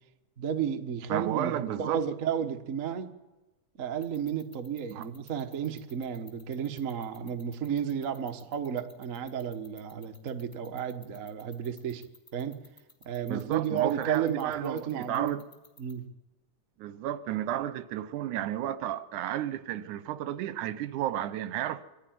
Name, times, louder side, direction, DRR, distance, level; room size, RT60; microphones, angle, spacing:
voice 1, 0.4-3.1 3.8-12.0 12.3-12.6 13.0-15.4 15.8-16.0, right 8 dB, 60° right, 0.8 m, -32 dB
voice 2, 1.1-2.0 4.9-5.1 13.3-15.4 16.8-21.8, right 12 dB, 80° right, 2.3 m, -32 dB
sound 1, 4.0-15.9, left 2 dB, 5° left, 2.7 m, -54 dB
23.0 x 15.0 x 9.3 m
omnidirectional pair, 3.5 m